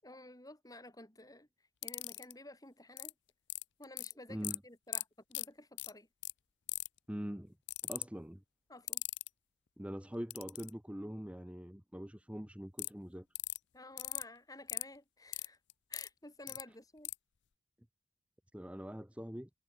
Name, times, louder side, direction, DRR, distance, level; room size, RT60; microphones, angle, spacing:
voice 1, 0.0-1.5 1.8-3.1 3.8-6.1 8.7-9.0 13.7-15.6 15.9-17.1, left 2 dB, 20° left, 6.2 m, -53 dB
sound 1, 1.8-2.3 3.0-3.1 3.5-4.1 4.4-4.6 4.9-5.0 5.3-5.5 5.8-5.9 6.2-6.3 6.7-7.0 7.7-8.0 8.9-9.3 10.3-10.7 12.8-12.9 13.3-13.6 14.0-14.2 14.7-14.8 15.3-16.1 16.5-16.6 17.0-17.1, left 19 dB, 70° left, 0.5 m, -38 dB
voice 2, 4.3-4.6 7.1-7.5 7.8-8.4 9.8-13.3 18.5-19.5, equal, 5° right, 1.1 m, -43 dB
head